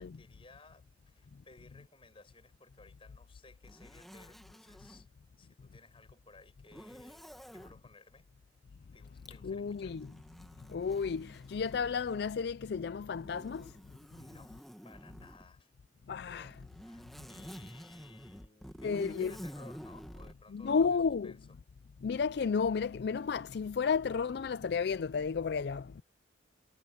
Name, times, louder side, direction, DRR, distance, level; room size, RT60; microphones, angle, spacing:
voice 1, 0.0-5.1 5.4-8.3 8.9-10.0 14.2-15.7 16.2-16.5 16.8-21.4, left 3 dB, 30° left, 5.0 m, -59 dB
Zipper (clothing), 3.6-5.0 6.7-7.8 9.2-12.4 13.2-15.5 16.4-20.4, equal, ahead, 1.8 m, -49 dB
voice 2, 9.4-10.1 10.7-13.7 16.1-16.5 18.8-19.3 20.5-21.3 22.0-26.0, left 5 dB, 60° left, 0.4 m, -32 dB
head